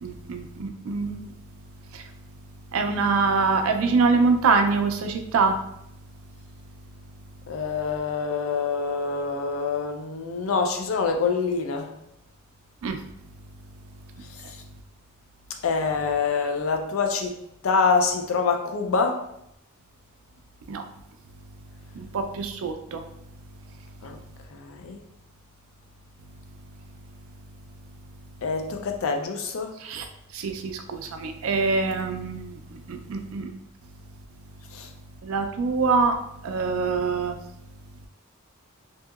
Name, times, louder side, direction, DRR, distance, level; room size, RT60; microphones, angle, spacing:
voice 1, 0.0-1.3 1.9-2.0 2.7-5.6 12.8-13.0 20.7-20.8 22.0-23.0 29.8-30.1 30.3-33.6 35.2-36.2 36.4-37.4, right 4 dB, 70° right, 0.4 m, -24 dB
voice 2, 7.5-11.9 15.6-17.3 17.6-19.2 24.0-24.2 24.5-25.0 28.4-29.7 34.7-34.9, left 5 dB, 70° left, 0.4 m, -25 dB
2.7 x 2.7 x 2.3 m
head